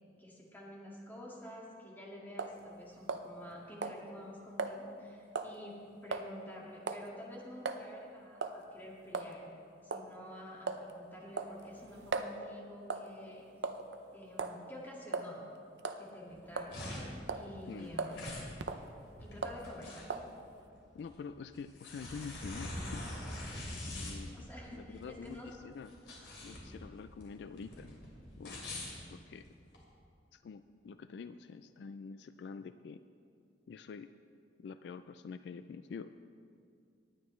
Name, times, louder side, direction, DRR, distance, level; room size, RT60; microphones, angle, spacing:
voice 1, 0.2-9.4 9.8-13.5 14.1-15.4 16.0-17.1 17.4-18.2 19.2-20.2 24.3-25.5, left 1 dB, 10° left, -4 dB, 2.0 m, -49 dB
sound 1, 2.4-2.6 3.1-3.5 3.8-4.0 4.6-4.8 5.4-5.6 6.1-6.3 6.9-7.1 7.7-7.8 8.4-8.6 9.1-9.3 9.9-10.1 10.7-10.9 11.4-12.3 12.9-13.1 13.6-14.0 14.4-14.6 15.1-15.3 15.8-16.0 16.6-17.0 17.3-17.5 18.0-18.2 18.6-18.9 19.4-19.6 20.1-20.3, right 4 dB, 85° right, 0.6 m, -37 dB
sound 2, 16.3-29.8, left 1 dB, 85° left, 2.9 m, -44 dB
voice 2, 20.9-23.1 23.9-25.9 26.4-27.9 28.4-28.6 29.1-29.5 30.3-33.0 33.7-34.1 34.6-36.1, left 5 dB, 70° left, 11 dB, 0.3 m, -46 dB
19.0 x 9.1 x 3.2 m, 2.4 s
head